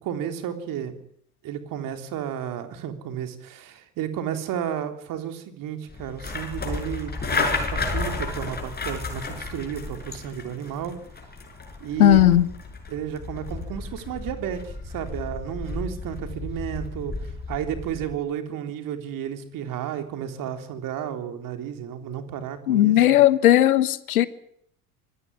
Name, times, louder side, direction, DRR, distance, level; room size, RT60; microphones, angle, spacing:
voice 1, 0.0-0.9 1.4-11.0 11.8-12.3 12.9-23.2, right 9 dB, 45° right, 3.6 m, -32 dB
sound 1, 5.9-18.2, left 3 dB, 20° left, 6.1 m, -32 dB
voice 2, 12.0-12.5 22.7-24.3, left 13 dB, 70° left, 1.5 m, -16 dB
24.5 x 17.0 x 9.7 m
figure-of-eight pair, 70°, 45 cm